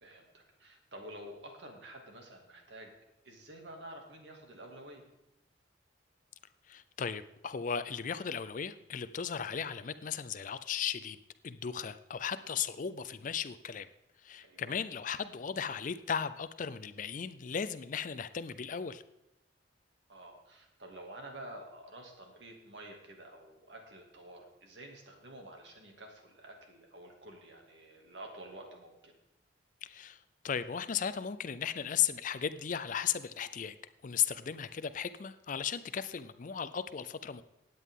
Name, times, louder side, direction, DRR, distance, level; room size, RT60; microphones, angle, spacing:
voice 1, 0.0-2.9 3.2-5.0 14.4-14.7 20.1-29.1, right 1 dB, 70° right, 2 dB, 2.4 m, -50 dB
voice 2, 6.7-11.2 11.4-13.9 14.2-19.0 29.8-30.2 30.4-33.8 34.0-37.4, left 8 dB, 45° left, 14 dB, 0.4 m, -36 dB
16.5 x 9.3 x 3.7 m, 0.86 s
head